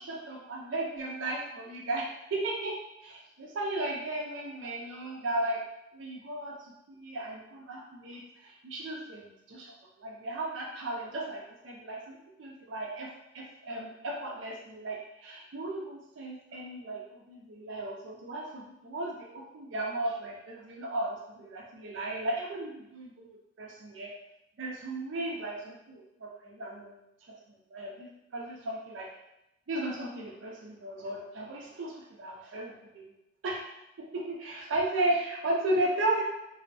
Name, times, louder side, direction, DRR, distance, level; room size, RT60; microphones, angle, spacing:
voice 1, 0.3-2.8 3.0-5.6 5.9-6.5 6.9-9.7 10.0-13.1 13.3-24.1 24.6-27.0 27.7-29.1 29.7-33.2 33.4-33.7 34.1-36.2, right 1 dB, 80° right, -3 dB, 0.5 m, -35 dB
2.5 x 2.0 x 2.5 m, 0.86 s
head